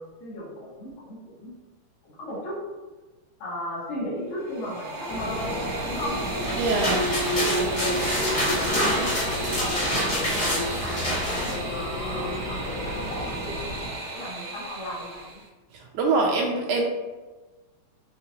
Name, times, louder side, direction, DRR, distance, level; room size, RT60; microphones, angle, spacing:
voice 1, 0.0-1.5 2.0-2.6 3.4-5.5 5.8-6.2 7.2-11.0 11.7-15.4, left 1 dB, 85° left, -10 dB, 3.1 m, -36 dB
sound 1, 4.3-15.5, right 2 dB, 60° right, 1.7 m, -34 dB
sound 2, 5.1-13.9, left 1 dB, 70° left, 2.1 m, -31 dB
sound 3, 6.2-11.6, equal, 40° left, 1.4 m, -27 dB
voice 2, 6.6-7.0 15.9-16.8, right 3 dB, 85° right, -1 dB, 1.5 m, -23 dB
6.7 x 2.4 x 2.8 m, 1.2 s
omnidirectional pair, 3.4 m